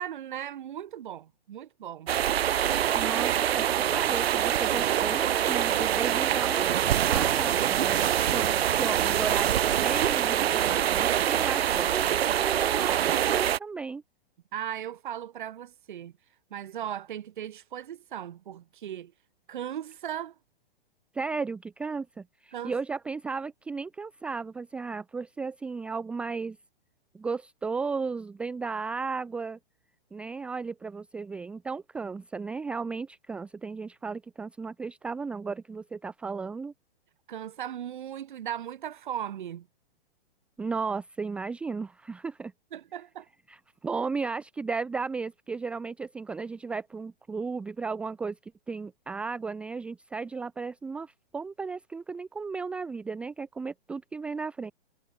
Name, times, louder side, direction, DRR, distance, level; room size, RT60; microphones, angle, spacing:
voice 1, 0.0-2.1 3.0-3.4 14.5-16.1 16.5-19.1 19.5-20.3 22.5-22.7 37.3-39.7 42.7-43.3, right 10 dB, 50° right, 5.1 m, -37 dB
sound 1, 2.1-13.6, right 10 dB, 70° right, 0.8 m, -25 dB
voice 2, 2.9-14.0 21.1-26.6 27.1-29.6 30.1-36.7 40.6-42.5 43.5-54.7, right 4 dB, 5° right, 1.1 m, -35 dB
hypercardioid pair, 175°, 31 cm